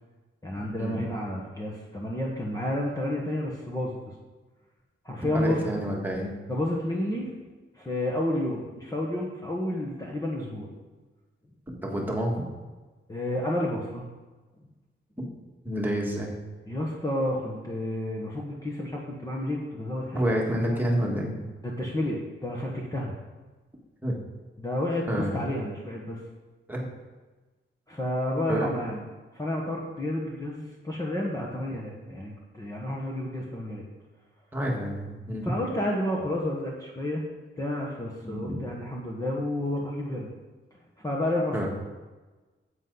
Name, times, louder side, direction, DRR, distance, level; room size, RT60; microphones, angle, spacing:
voice 1, 0.4-4.0 5.0-5.7 6.5-7.3 7.8-10.7 13.1-14.1 16.7-20.4 20.7-20.8 21.6-23.1 24.6-26.2 27.9-29.0 29.3-33.8 35.4-37.2 37.6-40.3 41.0-41.7, left 1 dB, 15° left, -3 dB, 1.3 m, -30 dB
voice 2, 5.3-6.3 11.8-12.5 15.2-15.3 15.7-16.3 20.1-21.3 24.0-24.1 25.1-25.3 26.7-26.9 28.5-28.7 34.5-35.5 38.2-38.6 41.5-41.7, equal, 10° right, -2 dB, 1.9 m, -28 dB
10.5 x 8.1 x 4.0 m, 1.2 s
wide cardioid pair, 135°, 21 cm